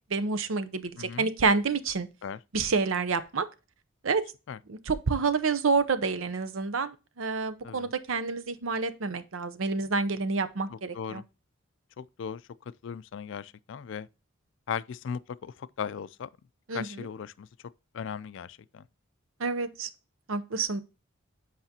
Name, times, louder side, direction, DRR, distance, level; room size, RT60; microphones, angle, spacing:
voice 1, 0.1-2.1 2.5-3.5 4.0-4.3 4.7-11.2 16.7-16.9 19.4-19.9 20.3-20.8, right 4 dB, 80° right, 0.7 m, -28 dB
voice 2, 1.0-1.3 2.2-2.4 4.5-4.6 7.6-7.9 10.7-11.2 12.0-12.4 12.8-14.1 14.7-16.3 16.7-17.5 17.9-18.9, left 7 dB, 65° left, 0.3 m, -37 dB
8.0 x 5.0 x 2.8 m
head